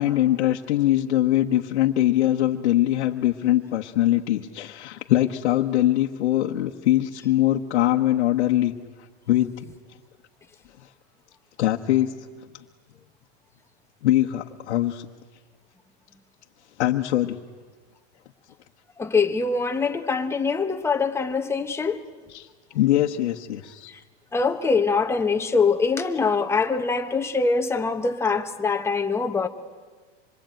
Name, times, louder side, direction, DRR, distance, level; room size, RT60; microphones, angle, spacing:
voice 1, 0.0-8.7 9.3-9.7 11.6-12.1 14.0-15.1 16.8-17.4 22.3-22.5 22.7-23.9, left 14 dB, 90° left, 1.2 m, -22 dB
voice 2, 19.0-22.0 24.3-29.5, left 4 dB, 10° left, 1.1 m, -23 dB
26.0 x 22.0 x 9.1 m
supercardioid pair, 150°, 33 cm